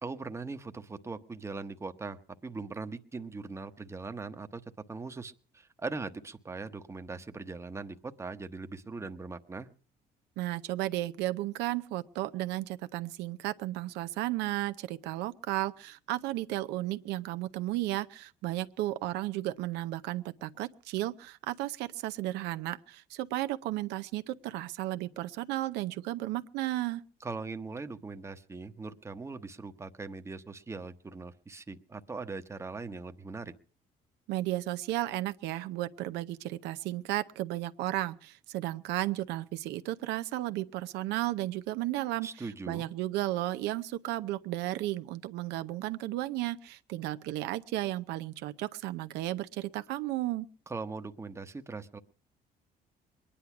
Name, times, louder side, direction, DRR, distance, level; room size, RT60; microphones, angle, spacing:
voice 1, 0.0-4.6 4.9-9.7 27.2-33.5 42.2-42.9 50.7-52.0, right 3 dB, 15° right, 0.9 m, -40 dB
voice 2, 10.4-27.0 34.3-42.3 42.7-50.5, right 16 dB, 90° right, 0.6 m, -34 dB
21.5 x 10.0 x 5.9 m
cardioid pair, 110°, 17 cm